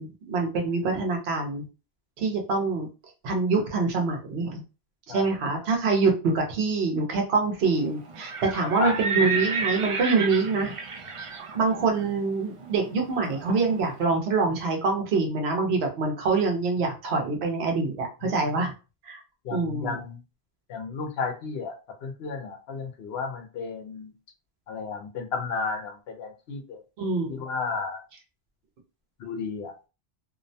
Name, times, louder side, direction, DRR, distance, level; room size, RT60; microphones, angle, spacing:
voice 1, 0.0-1.6 2.2-2.9 3.2-4.6 5.1-10.8 11.2-18.7 19.0-19.2 19.5-20.0 27.0-27.5, right 4 dB, 85° right, 3 dB, 1.0 m, -25 dB
Livestock farm animals working animals, 8.0-13.9, right 4 dB, 60° right, 0.3 m, -32 dB
voice 2, 19.4-20.2 20.7-21.8 22.0-24.1 24.7-26.8 27.3-28.0 29.2-29.7, left 5 dB, 75° left, 5 dB, 0.8 m, -32 dB
2.6 x 2.0 x 2.6 m, 0.31 s
omnidirectional pair, 1.0 m